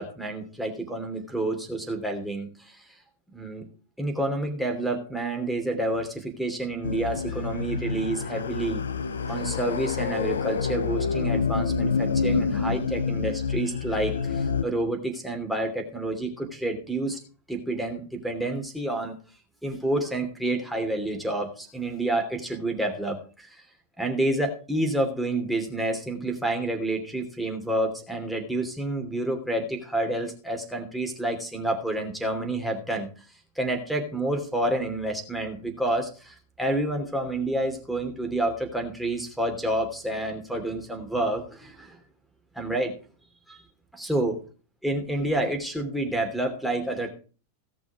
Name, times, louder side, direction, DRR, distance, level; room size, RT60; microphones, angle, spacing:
voice 1, 0.0-2.8 3.3-3.7 4.0-8.8 9.3-17.2 17.5-19.2 19.6-23.5 24.0-33.1 33.6-42.0 42.5-43.0 43.5-43.6 43.9-44.4 44.8-47.1, right 1 dB, ahead, 1 dB, 2.9 m, -29 dB
sound 1, 6.8-14.6, left 5 dB, 70° left, 0.7 m, -27 dB
17.0 x 6.2 x 4.8 m, 0.37 s
figure-of-eight pair, 90°, 0 cm